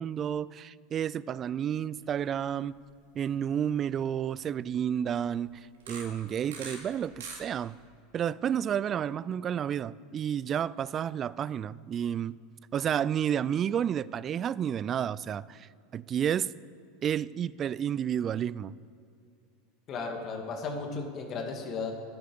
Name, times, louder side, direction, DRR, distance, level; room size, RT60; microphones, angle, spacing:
voice 1, 0.0-2.7 3.2-7.8 8.1-12.4 12.7-16.5 17.0-18.7, right 9 dB, 35° right, 0.3 m, -31 dB
sound 1, 2.0-2.3 2.7-2.9 3.5-3.6 5.7-6.8 7.1-7.8, right 5 dB, 80° right, 2.6 m, -43 dB
voice 2, 19.9-21.9, left 4 dB, 40° left, 2.4 m, -35 dB
13.5 x 9.3 x 7.0 m
hypercardioid pair, 90°, 0 cm